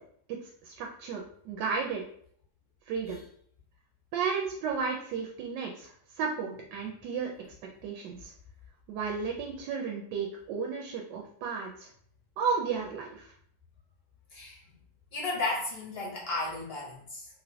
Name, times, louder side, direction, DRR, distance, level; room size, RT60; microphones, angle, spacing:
voice 1, 0.3-2.0 2.9-3.2 4.1-7.3 7.8-8.3 8.9-11.9 12.4-13.3, right 5 dB, 80° right, 1 dB, 1.2 m, -33 dB
voice 2, 14.3-14.8 15.1-17.3, left 2 dB, 45° left, -4 dB, 0.8 m, -34 dB
3.1 x 2.8 x 2.7 m, 0.62 s
omnidirectional pair, 1.9 m